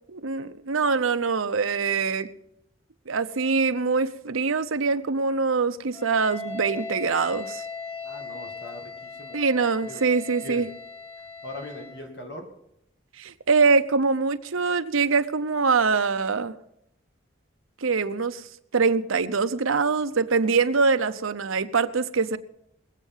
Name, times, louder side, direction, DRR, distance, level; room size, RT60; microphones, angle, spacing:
voice 1, 0.1-2.3 3.1-7.6 9.3-10.7 13.2-16.6 17.8-18.5 18.7-22.4, right 4 dB, 90° right, 0.8 m, -24 dB
Wind instrument woodwind instrument, 5.9-12.1, left 3 dB, 10° left, 2.8 m, -38 dB
voice 2, 8.0-9.4 9.9-10.0 10.4-10.6 11.4-12.5, left 1 dB, 55° left, 2.1 m, -40 dB
21.5 x 8.3 x 5.5 m
head